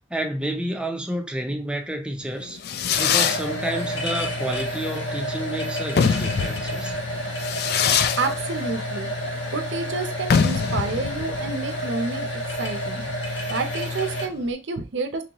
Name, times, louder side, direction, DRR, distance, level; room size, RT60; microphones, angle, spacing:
voice 1, 0.1-2.6 3.0-7.0, right 1 dB, 5° right, 0.5 m, -30 dB
Fireworks, 2.3-14.5, left 7 dB, 55° left, 0.4 m, -26 dB
sound 1, 2.9-14.3, equal, 85° left, 1.3 m, -30 dB
voice 2, 8.2-9.1 9.5-13.0 13.5-15.2, right 3 dB, 70° right, 0.6 m, -29 dB
3.8 x 3.1 x 2.9 m
head